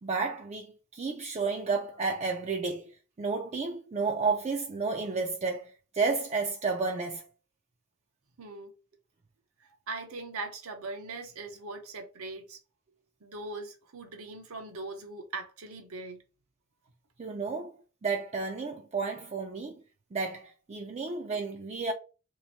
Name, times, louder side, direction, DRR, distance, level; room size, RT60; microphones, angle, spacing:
voice 1, 0.0-2.9 3.2-7.3 17.2-17.7 18.0-19.8 20.1-21.9, right 4 dB, 30° right, 0.4 m, -31 dB
voice 2, 8.4-8.7 9.6-12.6 13.2-16.2, right 3 dB, 75° right, 0.9 m, -40 dB
2.9 x 2.6 x 4.2 m
head